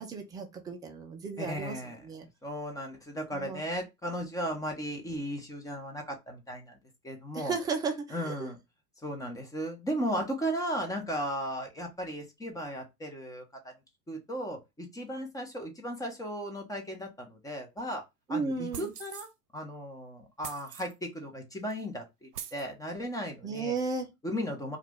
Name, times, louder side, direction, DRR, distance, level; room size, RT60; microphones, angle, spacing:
voice 1, 0.0-1.8 2.0-2.3 3.3-3.6 7.3-7.9 8.2-8.3 18.3-18.9 23.4-24.1, right 4 dB, 10° right, 0.3 m, -34 dB
voice 2, 1.4-2.1 2.4-6.8 7.0-7.6 8.1-8.6 9.0-13.7 14.1-18.0 18.3-23.7 24.2-24.8, equal, 5° left, 0.8 m, -36 dB
sound 1, 18.7-19.3 20.4-20.9 21.7-21.8 22.3-22.6, right 9 dB, 85° right, 0.7 m, -42 dB
2.9 x 2.4 x 3.5 m
hypercardioid pair, 105°, 46 cm